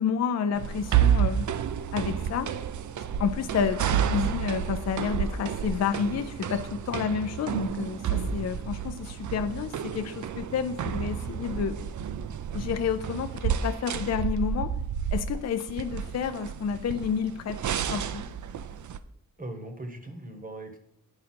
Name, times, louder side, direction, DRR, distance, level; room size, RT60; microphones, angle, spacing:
voice 1, 0.0-1.5 1.9-2.5 3.2-11.8 12.5-14.7 15.1-17.6 17.9-18.3, left 7 dB, 50° left, 9 dB, 0.4 m, -30 dB
sound 1, 0.5-19.0, right 8 dB, 60° right, 0.5 m, -30 dB
voice 2, 19.4-20.8, right 1 dB, 25° right, 6 dB, 1.0 m, -39 dB
9.6 x 5.1 x 4.3 m, 0.74 s
wide cardioid pair, 155°, 34 cm